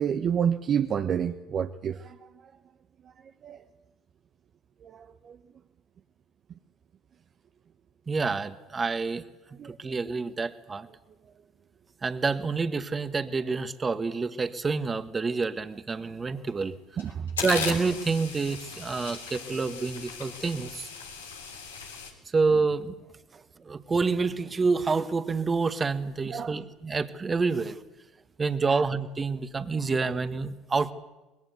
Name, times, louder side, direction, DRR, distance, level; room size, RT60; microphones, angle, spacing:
voice 1, 0.0-2.3 3.4-3.6 4.8-5.4 9.6-9.9 17.0-17.3 26.3-26.6 28.7-28.9, right 8 dB, 45° right, 7 dB, 1.0 m, -29 dB
voice 2, 8.1-9.2 9.8-10.9 12.0-16.7 17.4-20.9 22.3-22.9 23.6-27.8 28.4-30.9, right 4 dB, 30° right, 11 dB, 1.7 m, -28 dB
sound 1, 16.5-16.6 17.0-22.1, left 5 dB, 90° left, 3.3 m, -37 dB
24.5 x 20.5 x 8.3 m, 1.1 s
hypercardioid pair, 65°, 0 cm